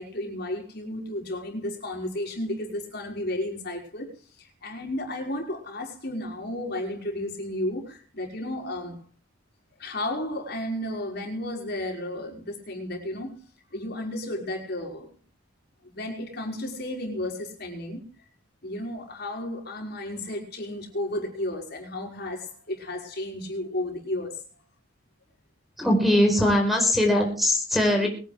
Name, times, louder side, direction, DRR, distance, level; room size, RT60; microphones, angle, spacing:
voice 1, 0.0-4.1 4.4-9.0 9.8-13.4 13.7-15.1 15.8-18.1 18.6-24.4, left 1 dB, 55° left, 5.5 m, -33 dB
voice 2, 25.8-28.1, left 1 dB, ahead, 4.5 m, -21 dB
23.5 x 10.5 x 3.5 m
head